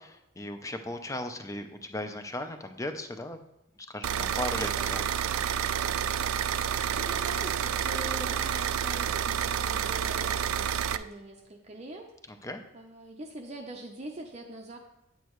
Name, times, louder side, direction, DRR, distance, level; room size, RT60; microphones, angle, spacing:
voice 1, 0.0-3.4 3.9-5.0 12.3-12.6, left 1 dB, 15° left, 7 dB, 0.6 m, -37 dB
sound 1, 4.0-11.0, right 9 dB, 80° right, 0.4 m, -29 dB
voice 2, 6.5-12.1 12.4-12.5 12.7-14.8, right 2 dB, 30° right, 1 dB, 0.6 m, -43 dB
9.3 x 8.4 x 3.1 m, 0.90 s
head